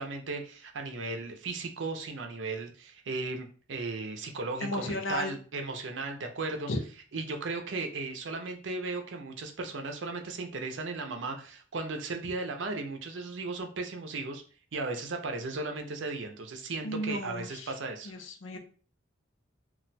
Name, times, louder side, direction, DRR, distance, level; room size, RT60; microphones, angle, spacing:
voice 1, 0.0-6.7 7.1-14.4 14.7-18.1, right 3 dB, 70° right, 4 dB, 0.6 m, -36 dB
voice 2, 4.6-5.3 6.7-6.8 16.8-17.7 18.0-18.6, left 1 dB, 85° left, 5 dB, 0.6 m, -34 dB
2.4 x 2.2 x 4.0 m, 0.40 s
head